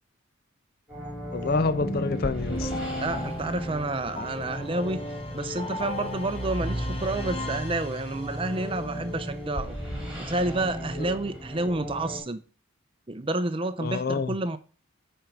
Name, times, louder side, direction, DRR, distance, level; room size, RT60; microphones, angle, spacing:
sound 1, 0.9-12.2, equal, 5° right, 3.0 m, -36 dB
voice 1, 1.3-2.7 11.0-11.1 13.8-14.3, left 4 dB, 45° left, 0.4 m, -27 dB
sound 2, 1.8-8.6, left 1 dB, 25° left, 1.2 m, -36 dB
voice 2, 3.0-5.0 5.3-9.8 10.2-12.4 13.1-14.6, right 2 dB, 25° right, 0.5 m, -29 dB
10.5 x 4.5 x 5.2 m
head